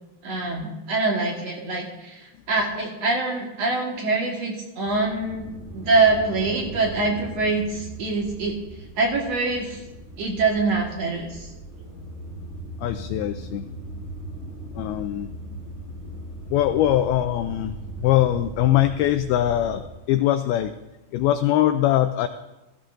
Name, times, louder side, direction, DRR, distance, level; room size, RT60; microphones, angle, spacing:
voice 1, 0.2-5.4 5.7-8.5 9.0-9.8 10.2-11.5, right 3 dB, 55° right, -1 dB, 1.9 m, -24 dB
sound 1, 4.9-19.9, right 2 dB, 75° right, 4.9 m, -39 dB
voice 2, 12.8-13.7 14.8-15.3 16.5-20.7 21.1-22.3, left 13 dB, 85° left, 9 dB, 2.2 m, -22 dB
15.5 x 15.5 x 2.5 m, 1.0 s
omnidirectional pair, 4.9 m